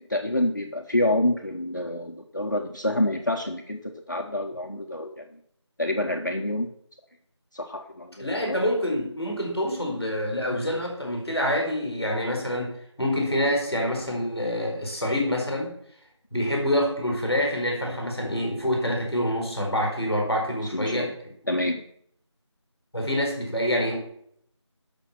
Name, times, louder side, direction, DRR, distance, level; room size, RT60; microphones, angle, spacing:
voice 1, 0.0-5.2 5.8-6.7 7.5-8.6 16.3-16.5 20.7-21.1 21.5-21.8, left 1 dB, 40° left, 2 dB, 0.9 m, -27 dB
voice 2, 8.2-12.7 13.0-15.7 16.3-21.1 22.9-24.0, equal, 5° right, -18 dB, 3.4 m, -26 dB
13.0 x 6.1 x 5.8 m, 0.68 s
figure-of-eight pair, 175°, 15 cm